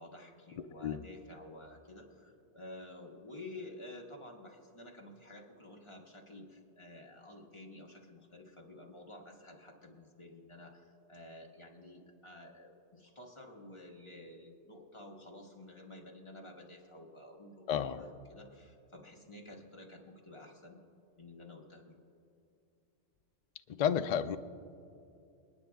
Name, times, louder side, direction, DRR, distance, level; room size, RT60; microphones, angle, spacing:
voice 1, 0.0-20.8 21.2-21.9, left 1 dB, 25° left, -1 dB, 1.5 m, -51 dB
voice 2, 17.7-18.0 23.7-24.4, left 8 dB, 65° left, 10 dB, 0.4 m, -31 dB
28.5 x 9.8 x 2.3 m, 2.6 s
omnidirectional pair, 1.2 m